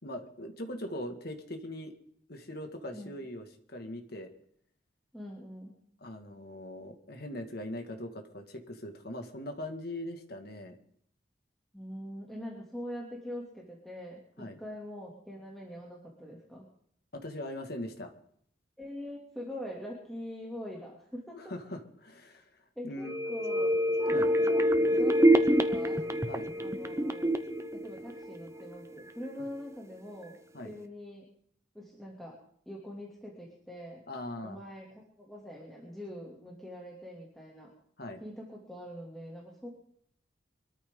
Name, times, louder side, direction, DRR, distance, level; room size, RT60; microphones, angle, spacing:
voice 1, 0.0-1.9 2.3-4.3 6.0-10.7 14.4-14.6 17.1-18.1 21.4-22.5 22.8-23.1 24.1-24.3 26.3-26.5 30.5-30.7 34.1-34.6 38.0-38.2, left 1 dB, 55° left, 5 dB, 2.1 m, -41 dB
voice 2, 5.1-5.8 11.7-16.7 18.8-21.4 22.8-23.8 24.1-26.0 26.6-27.3 27.7-30.4 30.6-31.3 31.7-32.4 32.7-34.0 34.4-37.7 38.2-39.7, equal, ahead, -4 dB, 2.7 m, -43 dB
sound 1, 23.0-28.7 29.1-29.2, equal, 15° right, 0.8 m, -26 dB
24.0 x 13.5 x 3.9 m, 0.66 s
head